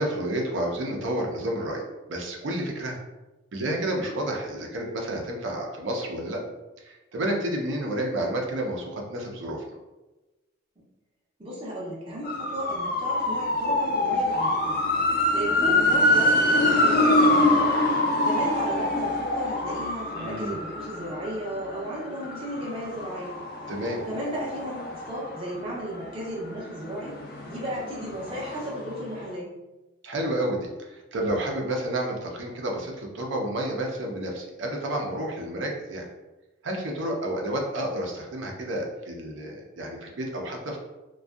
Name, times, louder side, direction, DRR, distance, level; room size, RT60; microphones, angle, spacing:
voice 1, 0.0-1.8 2.1-3.0 3.5-6.4 6.8-9.6 20.2-20.6 23.7-24.0 30.0-36.1 36.6-40.8, right 1 dB, 80° right, 0 dB, 0.5 m, -30 dB
voice 2, 11.4-14.8 15.3-17.6 18.2-23.3 24.0-27.2 27.5-29.5, equal, 30° right, -6 dB, 0.5 m, -34 dB
sound 1, 12.2-26.0 26.4-29.0 29.2-29.3, left 1 dB, 50° left, 0.3 m, -25 dB
2.6 x 2.2 x 2.3 m, 1.1 s
head